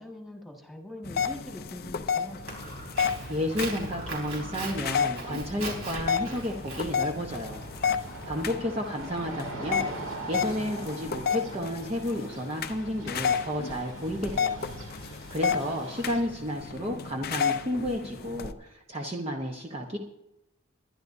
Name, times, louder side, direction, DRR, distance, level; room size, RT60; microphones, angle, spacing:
voice 1, 0.0-2.5 8.1-8.7, left 1 dB, ahead, 0 dB, 1.9 m, -43 dB
sound 1, 1.0-18.5, left 6 dB, 45° left, 0.6 m, -32 dB
sound 2, 2.3-16.2, right 2 dB, 60° right, 2.7 m, -43 dB
Walk footsteps, 2.5-8.6, right 2 dB, 75° right, 4.4 m, -40 dB
voice 2, 3.3-7.6 8.3-9.9 10.3-14.7 15.3-20.0, equal, 30° right, 1 dB, 1.0 m, -32 dB
22.5 x 11.0 x 2.7 m, 0.89 s
head